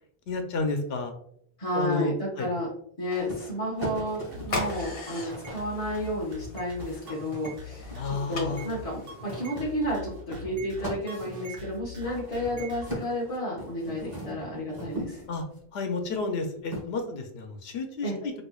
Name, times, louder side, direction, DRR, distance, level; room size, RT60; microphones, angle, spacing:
voice 1, 0.3-1.1 1.7-2.5 7.9-8.7 15.3-15.4 15.7-18.3, left 3 dB, 85° left, 5 dB, 0.9 m, -31 dB
voice 2, 1.6-2.7 3.0-15.2 18.0-18.2, equal, 40° left, -6 dB, 0.9 m, -31 dB
sound 1, 3.1-8.4 9.3-15.6 16.7-16.8, equal, 20° right, 1.1 m, -41 dB
sound 2, 4.3-12.9, left 1 dB, 70° right, 0.9 m, -43 dB
sound 3, 4.4-9.6, left 2 dB, 70° left, 1.2 m, -39 dB
4.3 x 2.6 x 2.3 m, 0.68 s
omnidirectional pair, 1.0 m